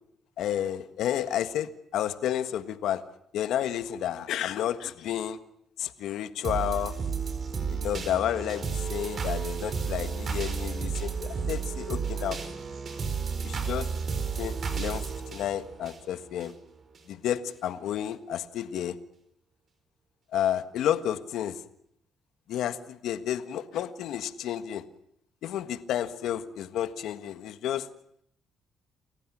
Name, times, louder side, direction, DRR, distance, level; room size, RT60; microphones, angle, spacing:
voice 1, 0.4-3.0 3.3-5.4 5.8-6.9 7.7-12.4 13.4-13.9 14.4-15.0 15.3-16.5 17.1-19.0 20.3-21.6 22.5-24.8 25.4-27.9, left 10 dB, 80° left, 11 dB, 1.6 m, -31 dB
sound 1, 6.4-16.5 16.9-17.0, right 6 dB, 50° right, 4.9 m, -32 dB
29.5 x 15.5 x 9.9 m, 0.74 s
cardioid pair, 90°, 0 cm